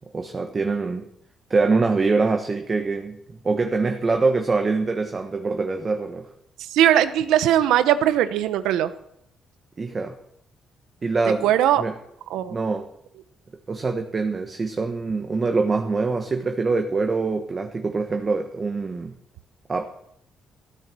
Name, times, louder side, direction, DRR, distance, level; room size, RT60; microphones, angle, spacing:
voice 1, 0.1-1.1 1.5-3.2 3.4-6.3 9.8-10.1 11.0-11.5 11.8-11.9 12.5-12.9 13.7-19.1 19.7-19.9, right 3 dB, 35° right, 5 dB, 1.3 m, -24 dB
voice 2, 6.6-8.9 11.4-11.8 12.3-12.6, right 11 dB, 90° right, 13 dB, 0.9 m, -19 dB
14.5 x 9.1 x 6.2 m, 0.73 s
cardioid pair, 90°, 0 cm